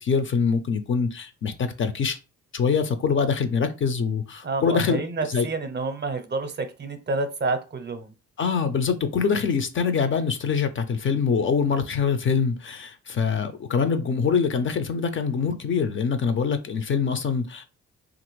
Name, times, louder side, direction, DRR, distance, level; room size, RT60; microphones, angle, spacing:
voice 1, 0.0-2.2 2.5-5.0 5.3-5.5 8.4-17.6, left 5 dB, 40° left, 0.5 m, -24 dB
voice 2, 4.4-8.1, right 3 dB, 35° right, 0.6 m, -29 dB
2.9 x 2.5 x 3.1 m
cardioid pair, 90°, 30 cm